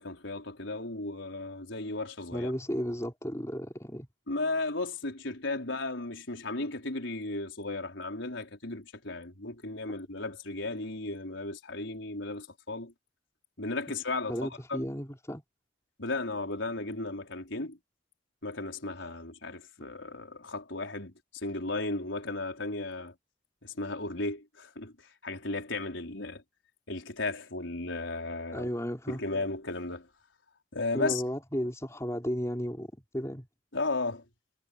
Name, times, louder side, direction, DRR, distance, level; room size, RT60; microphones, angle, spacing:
voice 1, 0.0-2.5 4.3-12.9 13.6-14.8 16.0-17.8 18.4-23.1 23.6-26.4 26.9-28.7 29.1-30.1 30.7-31.2 33.7-34.2, left 2 dB, 80° left, 4.9 m, -35 dB
voice 2, 2.3-4.1 14.3-15.4 28.5-29.2 30.9-33.5, equal, 15° left, 5.4 m, -34 dB
head